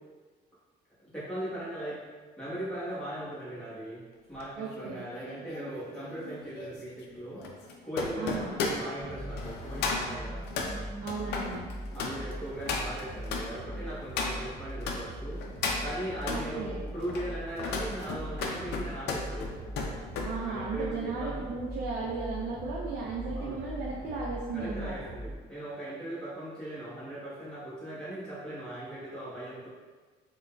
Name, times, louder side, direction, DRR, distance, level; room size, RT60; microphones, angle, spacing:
voice 1, 1.1-2.0 2.4-4.0 4.3-7.4 7.8-10.4 11.9-15.4 15.8-19.5 20.3-21.5 23.3-23.6 24.5-29.7, right 1 dB, 5° left, -11 dB, 1.1 m, -39 dB
sound 1, 4.4-15.0 15.4-16.4 17.0-20.3 20.7-21.0, left 4 dB, 80° left, 0.4 m, -35 dB
voice 2, 4.6-5.0 8.2-8.6 11.0-11.6 16.3-16.8 20.2-24.9, right 4 dB, 70° right, -4 dB, 0.5 m, -35 dB
sound 2, 9.0-25.3, right 1 dB, 10° right, 1.4 m, -40 dB
3.7 x 2.2 x 2.2 m, 1.4 s
cardioid pair, 110°, 17 cm